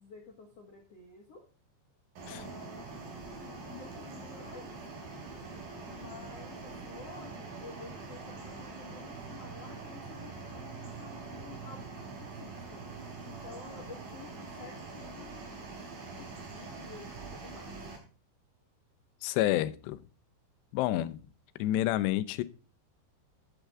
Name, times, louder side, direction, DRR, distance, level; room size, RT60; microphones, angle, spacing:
voice 1, 0.0-1.4 2.3-2.9 3.4-4.8 5.8-11.9 12.2-12.8 13.2-15.4 16.1-17.8, left 5 dB, 55° left, 1.8 m, -51 dB
sound 1, 2.2-18.0, right 4 dB, 55° right, 4.5 m, -44 dB
voice 2, 19.2-20.0 20.7-21.2 21.6-22.4, left 14 dB, 80° left, 2.8 m, -29 dB
11.5 x 8.2 x 3.6 m
omnidirectional pair, 5.1 m